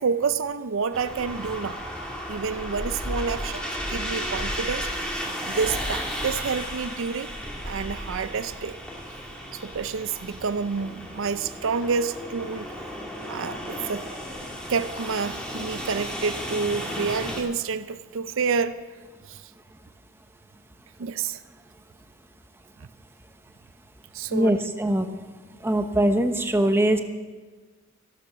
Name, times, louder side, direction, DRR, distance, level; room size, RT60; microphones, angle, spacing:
voice 1, 0.0-1.8 2.3-3.6 3.9-4.9 5.4-7.3 7.6-8.8 9.5-12.7 13.3-14.0 14.7-18.8 19.3-19.4 21.0-21.4 24.1-24.6, right 5 dB, 65° right, 13 dB, 0.5 m, -28 dB
sound 1, 0.9-17.4, equal, 5° left, 2.0 m, -34 dB
sound 2, 9.2-9.3 10.1-10.2 10.8-11.0 11.7-12.0 12.8-12.9 13.5-15.6 16.2-17.0, left 2 dB, 75° left, 5.5 m, -47 dB
voice 2, 24.3-25.1 25.6-27.0, right 1 dB, 10° right, 7 dB, 0.8 m, -22 dB
13.5 x 12.0 x 6.1 m, 1.4 s
head